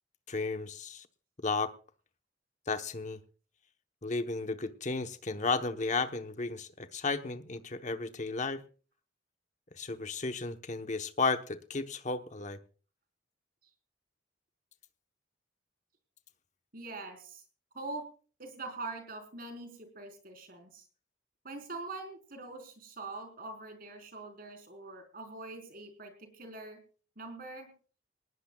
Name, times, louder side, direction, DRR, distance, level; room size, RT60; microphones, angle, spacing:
voice 1, 0.3-1.1 1.4-1.7 2.7-3.2 4.0-8.6 9.7-12.6, left 3 dB, 40° left, 8 dB, 1.0 m, -33 dB
voice 2, 16.7-17.4 17.7-18.0 18.4-20.8 21.4-26.8 27.2-27.7, right 3 dB, 50° right, 5 dB, 4.1 m, -43 dB
19.5 x 19.0 x 2.3 m, 0.39 s
head